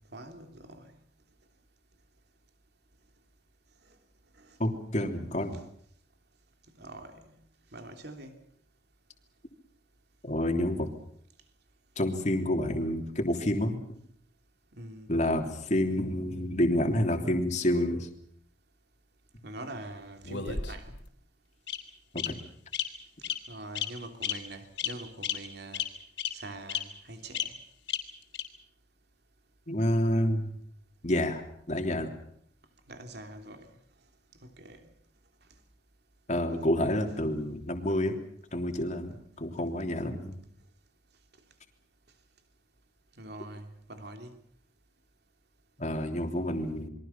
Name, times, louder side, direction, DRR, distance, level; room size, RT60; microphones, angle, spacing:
voice 1, 0.1-0.9 4.4-4.6 6.8-7.3 7.7-8.4 14.8-15.1 19.4-21.0 23.5-25.8 26.3-27.5 32.9-33.7 34.4-34.8 43.2-44.3, right 1 dB, 55° right, 3.2 m, -44 dB
voice 2, 4.6-5.6 10.2-10.9 12.0-13.8 15.1-18.1 22.1-22.4 29.7-30.5 31.0-31.4 31.7-32.1 36.3-38.1 38.5-40.4 45.8-46.9, left 1 dB, 35° left, 3.2 m, -28 dB
Bird vocalization bird call bird song, 20.2-21.0 21.7-21.8 22.2-22.3 22.7-22.8 23.2-23.4 23.7-23.9 24.2-24.3 24.8-24.9 25.2-25.3 25.7-25.8 26.2-26.3 26.7-26.8 27.3-27.4 27.9-28.0 28.3-28.4, left 9 dB, 70° left, 3.6 m, -31 dB
28.0 x 23.0 x 5.9 m
head